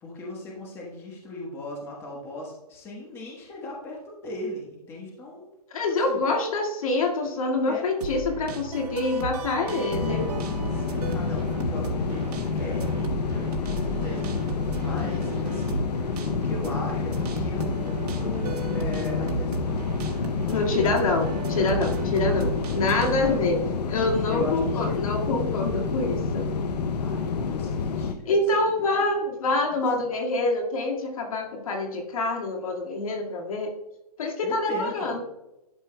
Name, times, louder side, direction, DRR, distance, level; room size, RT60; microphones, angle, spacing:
voice 1, 0.0-5.5 6.0-6.2 7.7-7.8 9.0-9.9 10.7-20.0 20.4-21.1 23.3-24.0 24.3-25.0 27.0-28.4 28.8-28.9 29.9-30.0 34.4-35.2, left 1 dB, 10° left, -2 dB, 1.2 m, -38 dB
voice 2, 5.7-10.3 20.5-26.5 28.3-33.7 34.2-35.2, left 2 dB, 60° left, 1 dB, 1.9 m, -26 dB
sound 1, 8.0-23.4, right 4 dB, 75° right, 1.4 m, -35 dB
sound 2, 9.9-28.1, left 5 dB, 90° left, 0.7 m, -28 dB
11.5 x 5.6 x 2.2 m, 0.93 s
hypercardioid pair, 170°, 20 cm